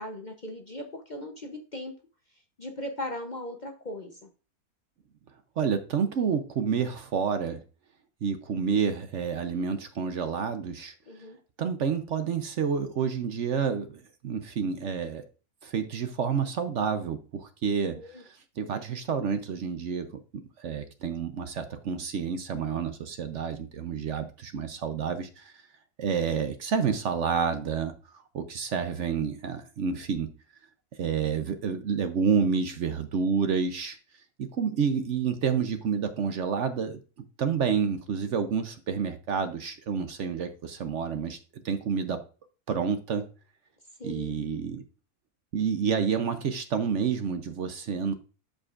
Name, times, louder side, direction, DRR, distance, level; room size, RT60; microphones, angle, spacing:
voice 1, 0.0-1.9 2.6-4.3 11.1-11.4 17.9-18.2 26.3-26.4 44.0-44.3, left 1 dB, 40° left, 4 dB, 0.7 m, -38 dB
voice 2, 5.6-7.6 8.2-10.9 11.6-15.2 15.6-20.1 20.3-25.6 26.0-30.3 31.0-34.0 34.4-37.0 37.4-41.4 41.6-42.2 42.7-43.2 44.0-44.8 45.5-48.1, right 6 dB, 60° right, 9 dB, 0.9 m, -29 dB
12.5 x 5.2 x 2.4 m, 0.36 s
omnidirectional pair, 1.6 m